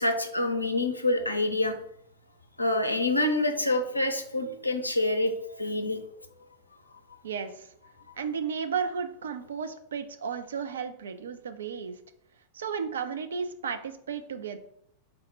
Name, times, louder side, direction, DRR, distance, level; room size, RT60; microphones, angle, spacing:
voice 1, 0.0-1.7 2.6-6.0, left 2 dB, 85° left, 6 dB, 0.5 m, -27 dB
voice 2, 7.2-7.7 8.2-12.0 12.5-14.6, right 6 dB, 65° right, 9 dB, 0.4 m, -33 dB
4.2 x 2.1 x 4.5 m, 0.69 s
figure-of-eight pair, 90°, 0 cm